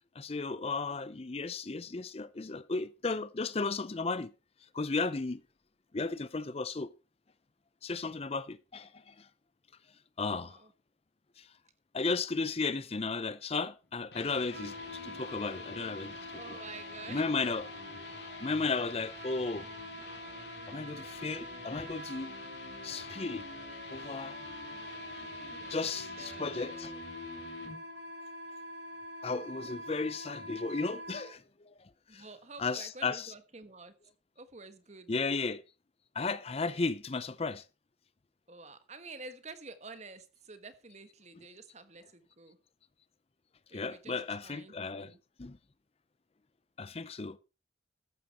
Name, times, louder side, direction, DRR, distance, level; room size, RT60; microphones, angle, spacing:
voice 1, 0.2-4.3 4.7-5.4 5.9-6.9 7.8-9.3 10.2-10.6 11.4-11.5 11.9-16.6 17.1-17.7 18.4-19.7 20.7-22.3 22.8-23.5 23.9-24.4 25.7-26.9 29.2-32.2 32.6-33.3 35.1-35.6 36.1-37.6 43.7-45.1 45.4-45.6 46.8-47.4, left 4 dB, 30° left, 0.5 m, -34 dB
voice 2, 10.4-10.7 16.3-17.3 24.5-24.7 25.4-27.0 32.1-33.9 34.4-35.1 38.5-42.6 43.7-45.2, right 3 dB, 35° right, 1.3 m, -50 dB
sound 1, 13.8-27.8, left 4 dB, 60° left, 2.7 m, -48 dB
Wind instrument woodwind instrument, 14.5-31.3, equal, 60° right, 3.0 m, -45 dB
14.0 x 10.0 x 4.2 m
head